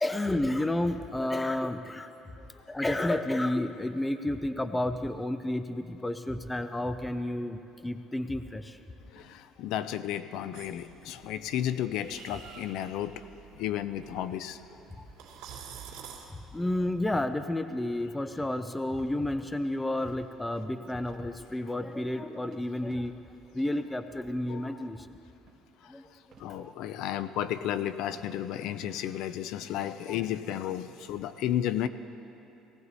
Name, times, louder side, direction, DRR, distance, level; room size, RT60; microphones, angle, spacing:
voice 1, 0.0-2.1 2.7-8.8 16.5-23.1 23.5-25.1 25.9-26.0 26.6-26.7 30.1-30.2, left 1 dB, 10° left, 10 dB, 0.4 m, -31 dB
voice 2, 9.1-13.3 13.5-14.6 24.5-24.7 25.8-31.9, left 11 dB, 65° left, 13 dB, 0.5 m, -33 dB
sound 1, 9.1-9.3 10.3-10.6 11.6-11.8 12.0-12.3 12.6-13.0 13.9-14.1 15.2-15.5 16.2-16.4 17.6-17.9 18.2-18.3 18.9-20.4 21.0-21.3 21.9-23.3 23.6-24.0 24.5-24.7 25.5-25.6 26.1-26.6 26.9-27.4, right 5 dB, 35° right, 2.0 m, -60 dB
sound 2, 10.5-17.3, right 7 dB, 75° right, 2.5 m, -49 dB
18.0 x 17.5 x 4.1 m, 3.0 s
cardioid pair, 160°, 0 cm